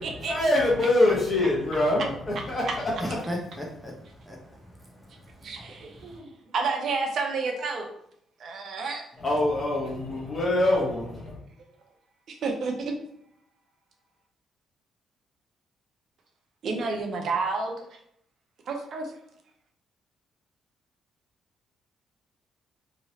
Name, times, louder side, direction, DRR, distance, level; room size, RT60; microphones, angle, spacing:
voice 1, 0.0-3.2 9.2-11.4, left 1 dB, 35° left, -3 dB, 1.4 m, -25 dB
voice 2, 3.0-6.2, equal, ahead, -1 dB, 0.9 m, -38 dB
voice 3, 5.4-7.9 8.4-9.0 12.3-12.9 16.6-17.7 18.7-19.1, right 4 dB, 60° right, 2 dB, 0.6 m, -30 dB
3.0 x 2.8 x 2.8 m, 0.70 s
cardioid pair, 90°, 0 cm